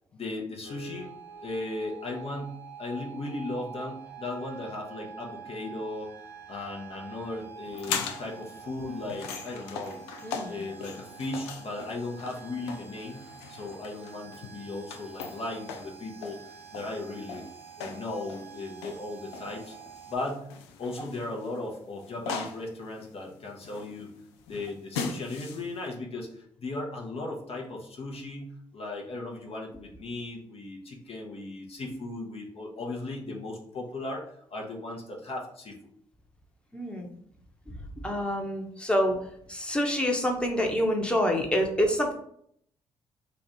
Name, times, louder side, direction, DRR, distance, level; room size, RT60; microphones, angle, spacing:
voice 1, 0.1-1.1 1.4-6.1 6.5-10.0 10.5-16.4 16.7-17.4 17.8-19.8 20.1-20.5 20.8-24.1 24.5-35.8, left 2 dB, 45° left, 0 dB, 0.9 m, -37 dB
sound 1, 0.6-20.2, right 7 dB, 65° right, 0.9 m, -47 dB
sound 2, 7.7-25.9, left 5 dB, 85° left, 0.4 m, -40 dB
voice 2, 10.2-10.6 36.7-37.1 38.0-39.2 39.5-42.1, equal, 5° left, 1 dB, 0.9 m, -27 dB
3.2 x 2.4 x 4.1 m, 0.66 s
hypercardioid pair, 45°, 13 cm